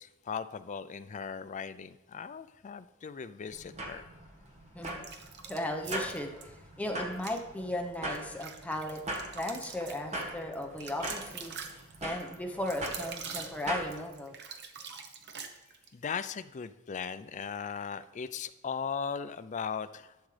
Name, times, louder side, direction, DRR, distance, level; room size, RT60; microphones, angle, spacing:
voice 1, 0.0-4.0 15.9-20.1, left 6 dB, 35° left, 12 dB, 0.4 m, -38 dB
sound 1, 3.5-13.9, right 1 dB, 30° right, 1.2 m, -41 dB
voice 2, 4.7-5.1 5.4-9.0 9.3-11.7 12.0-14.4, left 1 dB, 5° left, 2 dB, 0.9 m, -36 dB
sound 2, 4.8-6.5 7.1-7.4 7.9-15.9, right 6 dB, 50° right, 0.9 m, -44 dB
11.5 x 7.3 x 3.3 m, 1.1 s
head